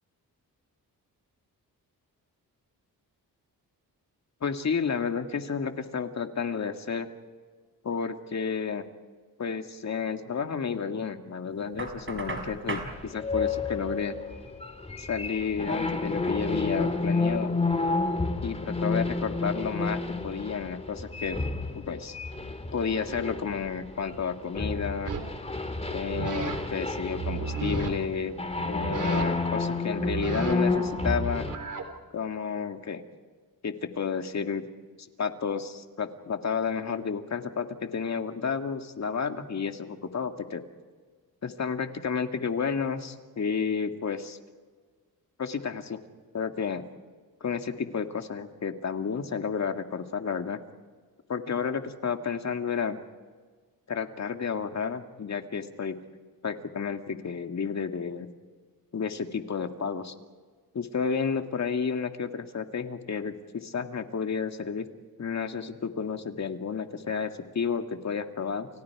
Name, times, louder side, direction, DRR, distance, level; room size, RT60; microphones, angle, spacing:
voice 1, 4.4-7.1 7.8-8.8 9.4-14.2 15.0-17.5 18.4-21.4 21.7-22.2 22.7-25.1 25.9-28.3 28.6-31.5 32.1-33.0 33.6-34.7 35.0-40.6 41.4-44.4 45.4-46.0 46.3-46.8 47.4-50.6 51.3-53.0 53.9-56.0 56.4-58.3 58.9-60.1 60.7-64.9 65.2-68.7, left 6 dB, 50° left, 6 dB, 2.1 m, -31 dB
Knock, 11.8-12.9, right 3 dB, 35° right, 5.7 m, -35 dB
sound 1, 13.2-24.2 24.5-31.5, left 3 dB, 15° left, 2.6 m, -30 dB
sound 2, 25.1-25.4 26.0-26.6 27.0-27.9 28.7-29.5 29.9-31.8, right 5 dB, 55° right, 3.9 m, -34 dB
30.0 x 29.5 x 4.9 m, 1.5 s
cardioid pair, 95°, 36 cm